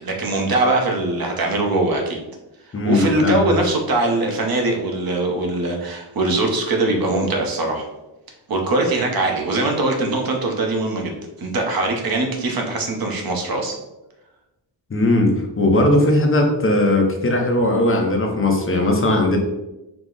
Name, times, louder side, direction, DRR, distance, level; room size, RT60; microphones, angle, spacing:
voice 1, 0.0-2.2 2.8-7.9 8.5-13.7, right 2 dB, 50° right, 1 dB, 0.8 m, -21 dB
voice 2, 2.7-3.4 14.9-19.4, left 1 dB, 30° left, 1 dB, 0.7 m, -18 dB
4.8 x 2.1 x 3.8 m, 0.97 s
wide cardioid pair, 150°, 44 cm